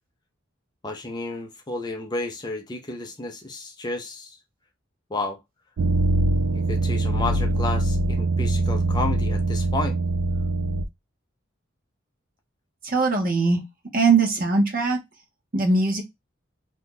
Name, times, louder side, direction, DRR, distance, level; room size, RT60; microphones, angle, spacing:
voice 1, 0.8-4.4 5.1-5.4 6.5-10.0, left 2 dB, 20° left, 0.5 m, -31 dB
sound 1, 5.8-10.8, right 2 dB, 80° right, 0.4 m, -23 dB
voice 2, 12.8-13.6 13.9-15.0 15.5-16.0, right 3 dB, 45° right, 0.9 m, -20 dB
2.7 x 2.3 x 3.6 m
head